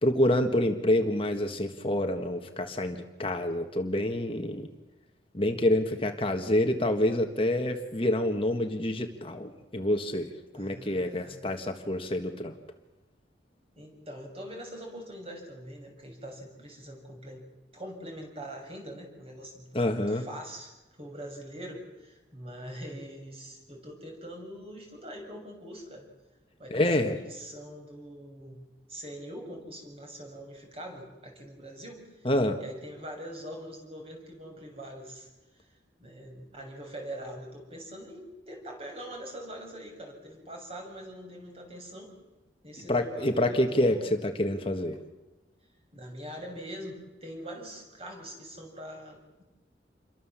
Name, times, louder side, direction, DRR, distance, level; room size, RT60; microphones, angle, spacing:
voice 1, 0.0-4.7 5.3-10.3 10.6-12.6 19.7-20.2 26.7-27.1 32.2-32.6 42.9-45.0, left 1 dB, 30° left, 5 dB, 1.6 m, -27 dB
voice 2, 10.5-11.4 13.7-17.4 17.7-20.7 21.0-26.1 26.6-28.6 28.9-32.3 32.6-35.3 36.0-42.1 42.6-44.1 45.9-49.4, equal, 35° right, 2 dB, 6.8 m, -43 dB
28.0 x 23.0 x 7.4 m, 1.1 s
head